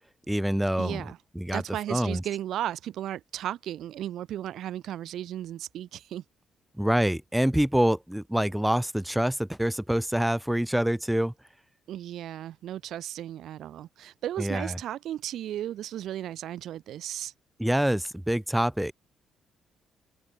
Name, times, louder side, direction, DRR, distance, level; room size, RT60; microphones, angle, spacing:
voice 1, 0.3-1.6 1.9-2.2 6.8-11.3 14.4-14.8 17.6-18.9, equal, 5° right, 1.2 m, -26 dB
voice 2, 0.8-1.2 1.5-6.2 11.9-17.3, right 12 dB, 75° right, 0.3 m, -35 dB
open air
cardioid pair, 90°, 0 cm